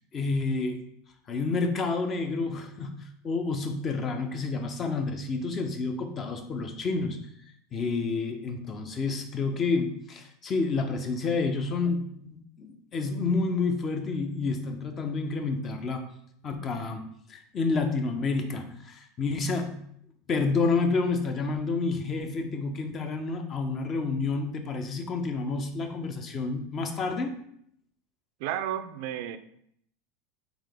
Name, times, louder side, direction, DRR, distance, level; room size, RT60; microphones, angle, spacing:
voice 1, 0.1-0.8 1.3-7.2 7.7-16.0 16.4-19.8 20.3-27.4, left 4 dB, 35° left, 6 dB, 0.6 m, -29 dB
voice 2, 28.4-29.4, right 11 dB, 65° right, 10 dB, 0.3 m, -32 dB
3.8 x 2.9 x 3.5 m, 0.69 s
hypercardioid pair, 105°, 0 cm